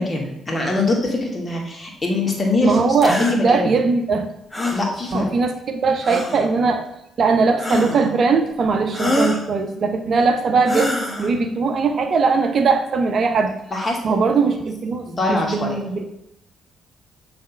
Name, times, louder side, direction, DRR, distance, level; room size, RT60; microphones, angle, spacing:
voice 1, 0.0-3.7 4.7-5.3 13.7-14.2 14.5-14.6 15.1-15.8, left 2 dB, 35° left, 0 dB, 2.2 m, -23 dB
voice 2, 2.6-4.3 5.1-6.9 7.2-13.5 14.0-16.1, right 4 dB, 50° right, 6 dB, 0.7 m, -20 dB
sound 1, 3.0-3.4 4.5-4.9 6.0-6.5 7.6-8.1 8.9-9.5 10.6-11.3, left 1 dB, 20° left, 1.5 m, -24 dB
6.5 x 3.5 x 5.6 m, 0.82 s
figure-of-eight pair, 45°, 0 cm